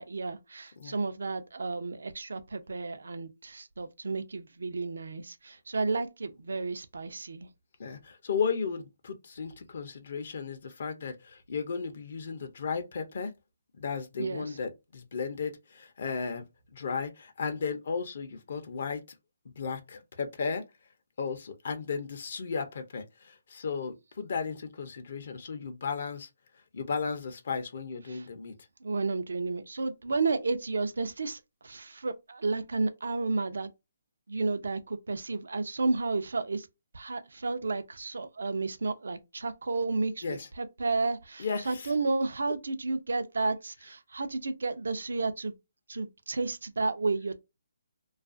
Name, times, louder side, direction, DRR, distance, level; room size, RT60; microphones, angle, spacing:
voice 1, 0.0-7.5 14.2-14.6 28.1-28.3 28.8-33.7 34.3-36.7 36.9-45.5 45.9-47.3, right 3 dB, 80° right, 0.5 m, -32 dB
voice 2, 7.8-13.3 13.8-16.4 16.7-19.0 19.6-20.6 21.2-26.3 26.7-28.5 40.2-40.5 41.4-41.9, left 5 dB, 60° left, 0.5 m, -34 dB
2.4 x 2.3 x 2.4 m
hypercardioid pair, 155°, 0 cm